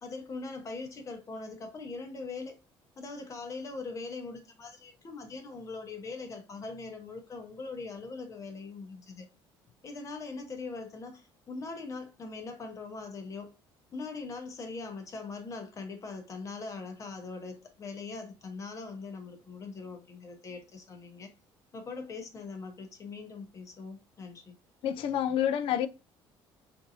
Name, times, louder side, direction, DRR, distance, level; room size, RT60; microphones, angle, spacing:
voice 1, 0.0-2.6 3.0-9.3 9.8-13.5 13.9-21.3 21.7-24.5, left 4 dB, 30° left, 0.8 m, -41 dB
voice 2, 24.8-25.9, left 10 dB, 65° left, 0.3 m, -28 dB
3.7 x 2.6 x 2.7 m
cardioid pair, 130°, 10 cm